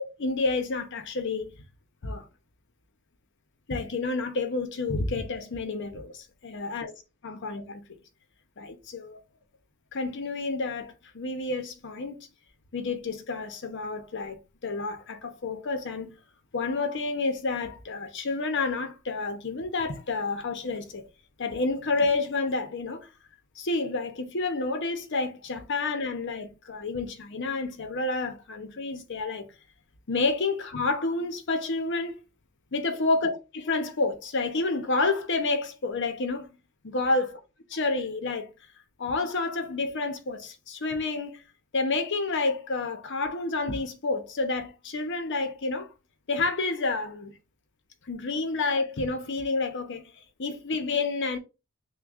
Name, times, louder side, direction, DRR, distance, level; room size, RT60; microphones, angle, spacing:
voice 1, 0.2-1.5 2.0-2.2 3.7-6.9 7.2-7.8 8.6-9.2 9.9-12.2 12.7-14.4 14.6-16.1 16.5-21.0 21.4-23.1 23.6-29.5 30.1-32.2 32.7-33.3 33.6-36.5 36.8-37.4 37.7-38.5 39.0-41.4 41.7-45.9 46.3-47.3 48.1-50.0 50.4-51.4, left 3 dB, 60° left, 0.7 m, -29 dB
6.1 x 2.2 x 2.4 m
head